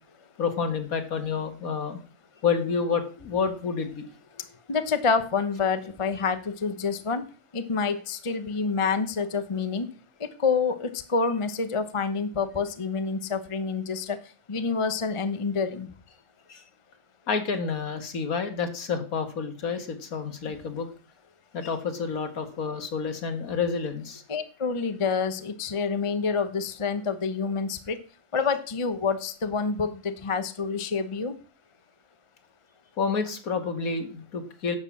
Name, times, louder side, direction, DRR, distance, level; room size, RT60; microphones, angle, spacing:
voice 1, 0.4-2.0 2.4-4.0 16.5-16.6 17.3-20.9 21.5-24.2 33.0-34.8, left 5 dB, 60° left, 8 dB, 1.9 m, -29 dB
voice 2, 4.7-7.2 7.5-9.9 10.2-14.2 14.5-15.9 20.4-20.5 24.3-28.0 28.3-31.3, left 5 dB, 25° left, 10 dB, 0.7 m, -27 dB
11.0 x 6.4 x 7.3 m, 0.39 s
omnidirectional pair, 1.7 m